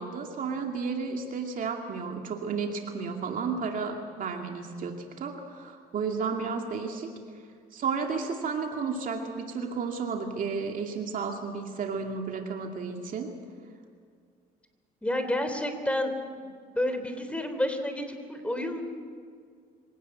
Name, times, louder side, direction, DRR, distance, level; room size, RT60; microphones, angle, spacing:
voice 1, 0.0-7.1 7.7-13.3, right 5 dB, 55° right, 2 dB, 2.4 m, -32 dB
voice 2, 15.0-16.1 16.4-18.8, left 1 dB, 5° left, 7 dB, 3.4 m, -30 dB
25.0 x 17.5 x 8.2 m, 2.1 s
cardioid pair, 110°, 17 cm